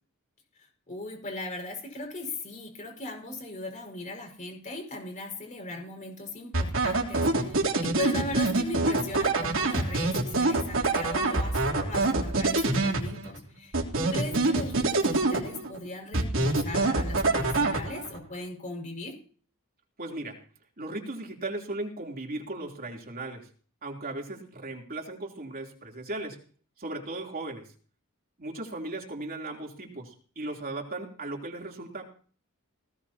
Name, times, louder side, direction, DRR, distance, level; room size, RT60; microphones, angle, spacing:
voice 1, 0.6-19.2, left 2 dB, 35° left, 2 dB, 5.5 m, -38 dB
sound 1, 6.5-13.4 13.7-15.8 16.1-18.2, right 2 dB, 65° right, 3.3 m, -26 dB
voice 2, 20.0-20.4 20.8-23.5 23.8-26.4 26.8-27.7 28.4-32.0, right 2 dB, 45° right, 1 dB, 3.4 m, -37 dB
19.0 x 18.0 x 2.9 m, 0.42 s
head